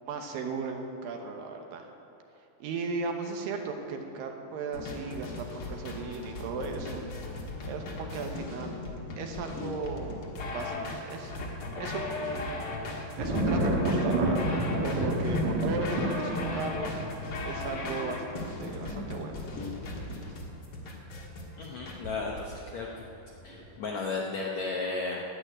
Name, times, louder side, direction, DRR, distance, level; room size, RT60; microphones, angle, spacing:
voice 1, 0.0-1.9 2.6-7.0 7.7-8.8 9.2-10.3 10.5-10.7 11.1-11.3 11.8-12.7 13.2-16.9 17.4-19.3, right 4 dB, 70° right, 4 dB, 2.5 m, -36 dB
sound 1, 4.7-22.0, left 2 dB, 55° left, 1.7 m, -37 dB
sound 2, 13.2-22.8 23.2-23.8, right 1 dB, 55° right, 2.7 m, -31 dB
voice 2, 21.6-22.9 23.4-25.2, left 3 dB, 70° left, -2 dB, 1.7 m, -34 dB
11.5 x 8.5 x 9.9 m, 3.0 s
omnidirectional pair, 4.5 m